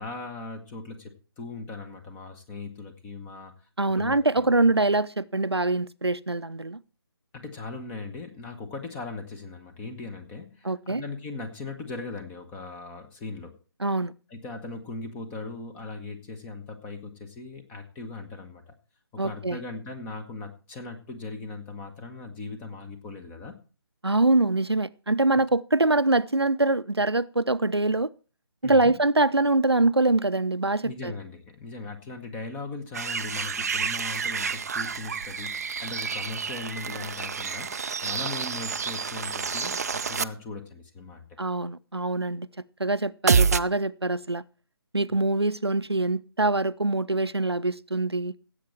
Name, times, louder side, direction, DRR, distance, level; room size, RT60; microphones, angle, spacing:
voice 1, 0.0-3.5 4.0-4.5 7.3-13.5 14.3-18.7 19.1-23.6 28.6-28.9 30.8-37.7 38.0-41.3, left 3 dB, 10° left, 1.3 m, -39 dB
voice 2, 3.8-6.8 10.6-11.0 13.8-14.1 19.2-19.6 24.0-28.1 28.6-31.1 41.4-42.5 42.8-44.4 44.9-48.3, right 2 dB, 90° right, 0.6 m, -24 dB
sound 1, 32.9-40.2 43.3-43.6, right 6 dB, 40° right, 0.5 m, -28 dB
16.5 x 8.1 x 4.5 m
figure-of-eight pair, 145°, 13 cm